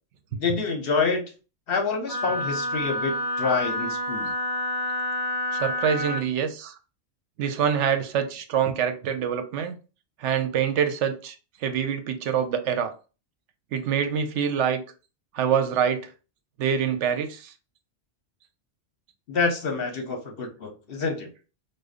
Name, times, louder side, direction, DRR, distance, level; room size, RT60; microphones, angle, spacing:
voice 1, 0.4-1.2 1.7-4.3 19.3-21.3, left 4 dB, 55° left, 0.9 m, -27 dB
Wind instrument woodwind instrument, 2.1-6.3, left 1 dB, 50° right, 1.1 m, -28 dB
voice 2, 5.5-6.8 7.4-9.8 10.2-11.3 11.6-12.9 13.7-14.8 15.3-16.1 16.6-17.5, right 8 dB, 75° right, 0.9 m, -25 dB
4.9 x 2.2 x 2.4 m
omnidirectional pair, 1.2 m